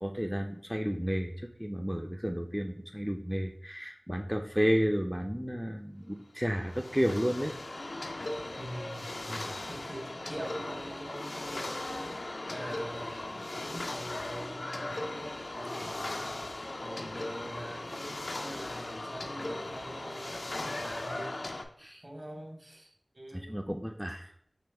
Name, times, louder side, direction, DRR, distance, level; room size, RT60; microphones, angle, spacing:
voice 1, 0.0-7.5 7.9-8.2 9.3-9.4 21.8-22.0 23.3-24.3, equal, 5° right, 3 dB, 0.4 m, -32 dB
sound 1, 6.4-21.6, left 2 dB, 85° left, 0.4 m, -38 dB
voice 2, 8.6-9.1 9.7-12.1 12.5-16.4 16.8-21.5 22.0-23.6, right 1 dB, 45° right, 2 dB, 1.0 m, -44 dB
5.3 x 3.1 x 3.3 m, 0.70 s
wide cardioid pair, 40°, 0 cm